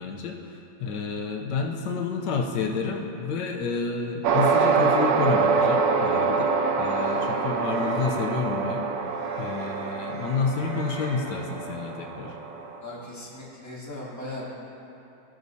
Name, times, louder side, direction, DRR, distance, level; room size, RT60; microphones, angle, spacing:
voice 1, 0.0-6.5 6.8-8.9 9.4-12.4, left 4 dB, 85° left, 2 dB, 1.4 m, -29 dB
sound 1, 4.2-12.8, right 5 dB, 70° right, 1.1 m, -25 dB
sound 2, 4.4-11.1, equal, 30° right, 2.4 m, -46 dB
voice 2, 12.8-14.5, left 1 dB, 10° left, -7 dB, 1.6 m, -38 dB
18.5 x 6.3 x 2.7 m, 3.0 s
omnidirectional pair, 1.8 m